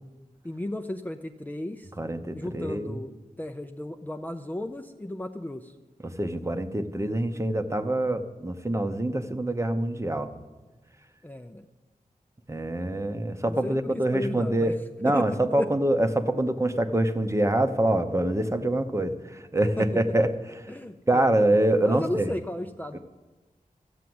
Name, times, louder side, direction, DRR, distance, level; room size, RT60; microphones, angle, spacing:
voice 1, 0.4-1.9 2.3-3.1 3.4-5.7 11.2-11.7 13.4-14.7 15.1-15.7 19.8-19.9 20.7-21.4 21.8-23.0, left 1 dB, 10° left, 6 dB, 0.5 m, -34 dB
voice 2, 2.0-3.0 6.0-10.3 12.5-14.7 15.0-20.7 21.1-22.3 22.9-23.0, right 1 dB, 20° right, 7 dB, 0.8 m, -25 dB
14.0 x 8.3 x 7.8 m, 1.2 s
wide cardioid pair, 100°, 15 cm